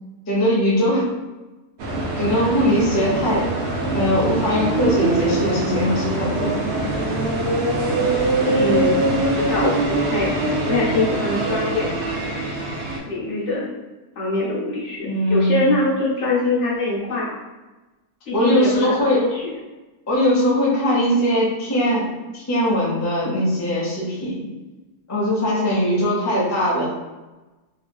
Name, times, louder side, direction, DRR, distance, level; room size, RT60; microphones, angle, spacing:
voice 1, 0.3-1.1 2.2-3.5 3.9-6.5 15.0-15.7 18.3-19.2 20.1-22.1 22.3-24.5 25.1-26.9, equal, 20° left, -7 dB, 0.5 m, -20 dB
sound 1, 1.8-13.0, right 2 dB, 65° right, 0.7 m, -23 dB
voice 2, 8.4-10.3 10.6-11.9 13.0-13.7 14.2-17.3 18.3-18.9 19.3-19.4, left 2 dB, 60° left, -6 dB, 0.9 m, -23 dB
3.0 x 2.8 x 2.2 m, 1.1 s
omnidirectional pair, 1.6 m